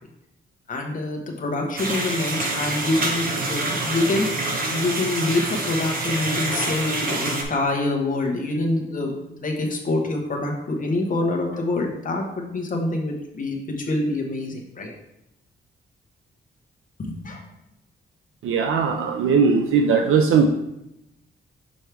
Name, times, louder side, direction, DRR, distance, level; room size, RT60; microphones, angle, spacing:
voice 1, 0.7-4.3 4.7-14.9 17.0-17.4, left 2 dB, 40° left, 1 dB, 1.0 m, -26 dB
sound 1, 1.8-7.4, right 2 dB, 45° right, 0.9 m, -26 dB
voice 2, 18.4-20.5, right 5 dB, 75° right, 3 dB, 0.5 m, -19 dB
6.3 x 4.5 x 3.4 m, 0.85 s
wide cardioid pair, 160°, 21 cm